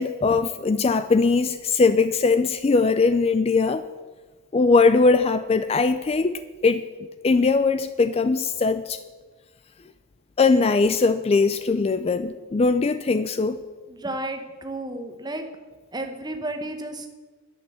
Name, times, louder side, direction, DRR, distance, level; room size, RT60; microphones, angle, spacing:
voice 1, 0.0-3.8 4.5-6.8 7.2-9.0 10.4-13.6, left 4 dB, 30° left, 12 dB, 0.3 m, -20 dB
voice 2, 13.9-15.5 15.9-17.1, right 1 dB, 20° right, 5 dB, 1.0 m, -32 dB
10.5 x 6.3 x 8.1 m, 1.3 s
head